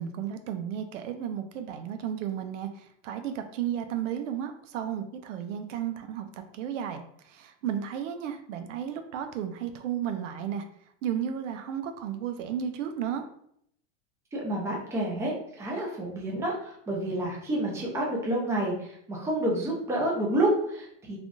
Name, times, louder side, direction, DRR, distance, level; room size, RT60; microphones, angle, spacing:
voice 1, 0.0-6.3 6.5-10.6 11.0-13.2, right 9 dB, 85° right, 7 dB, 0.6 m, -33 dB
voice 2, 14.3-21.2, right 1 dB, 10° right, -3 dB, 0.5 m, -29 dB
3.4 x 2.3 x 2.5 m, 0.69 s
supercardioid pair, 150°, 36 cm